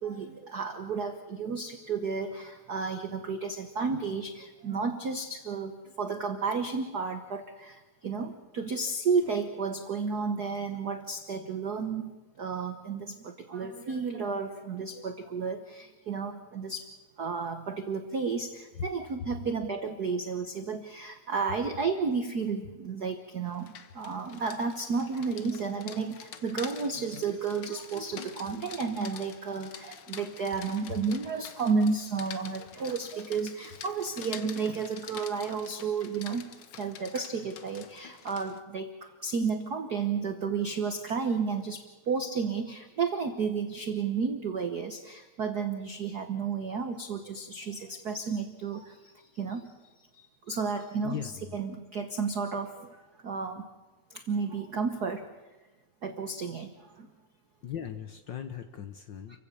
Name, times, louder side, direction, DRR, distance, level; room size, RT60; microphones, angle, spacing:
voice 1, 0.0-16.9 17.2-36.5 36.8-49.7 50.2-51.2 51.5-53.6 54.1-55.3 56.0-57.1 59.3-59.4, right 5 dB, 60° right, 7 dB, 1.0 m, -32 dB
Rain, 23.5-38.6, left 8 dB, 60° left, 1.5 m, -47 dB
voice 2, 51.0-51.6 57.6-59.4, left 8 dB, 75° left, 8 dB, 1.0 m, -38 dB
29.0 x 16.0 x 7.0 m, 1.2 s
omnidirectional pair, 3.4 m